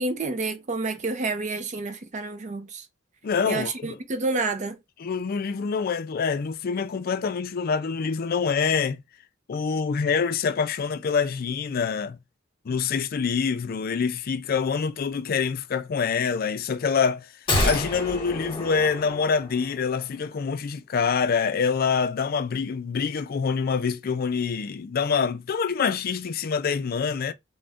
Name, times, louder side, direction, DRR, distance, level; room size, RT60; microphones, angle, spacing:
voice 1, 0.0-2.9 3.5-4.8, right 3 dB, 40° right, 0.5 m, -29 dB
voice 2, 3.2-4.0 5.0-9.0 9.5-12.2 12.7-17.3 17.6-27.3, left 5 dB, 50° left, 0.4 m, -26 dB
sound 1, 17.5-19.8 20.1-20.2, left 2 dB, 25° left, 1.2 m, -28 dB
2.6 x 2.1 x 3.4 m
head